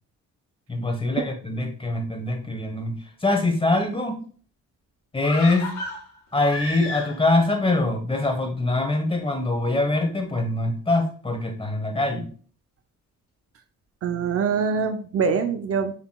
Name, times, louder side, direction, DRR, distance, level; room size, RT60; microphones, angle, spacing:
voice 1, 0.7-4.2 5.1-5.7 6.3-12.3, left 2 dB, 20° left, 6 dB, 1.0 m, -24 dB
sound 1, 5.2-7.4 7.7-7.8, left 2 dB, 70° left, 2.2 m, -33 dB
voice 2, 14.0-15.9, right 6 dB, 50° right, 7 dB, 0.5 m, -24 dB
7.3 x 2.9 x 2.2 m, 0.44 s
cardioid pair, 90°, 30 cm